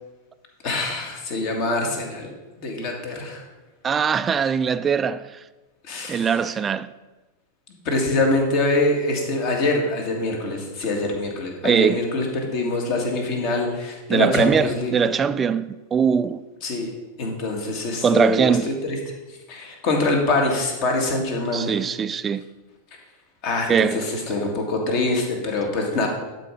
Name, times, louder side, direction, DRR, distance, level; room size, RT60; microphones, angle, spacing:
voice 1, 0.6-2.3 2.6-3.4 5.8-6.4 7.9-15.1 16.6-16.9 17.2-19.0 19.5-21.7 23.4-26.1, left 2 dB, 45° left, 1.9 m, -24 dB
voice 2, 3.8-5.2 6.1-6.9 11.6-12.0 14.1-16.4 18.0-18.7 21.5-22.4 23.7-24.0, right 6 dB, 20° right, 0.3 m, -21 dB
11.5 x 4.6 x 5.3 m
figure-of-eight pair, 90°, 0 cm